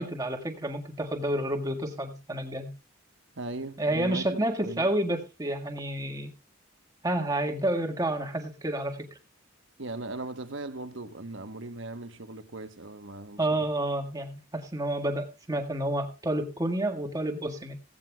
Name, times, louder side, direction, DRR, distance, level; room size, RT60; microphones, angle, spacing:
voice 1, 0.0-2.7 3.8-6.3 7.0-9.1 13.4-17.8, right 1 dB, 20° right, 1.7 m, -29 dB
voice 2, 3.3-4.4 4.6-4.9 9.8-13.5, right 2 dB, 65° right, 1.1 m, -38 dB
16.0 x 15.5 x 2.3 m
head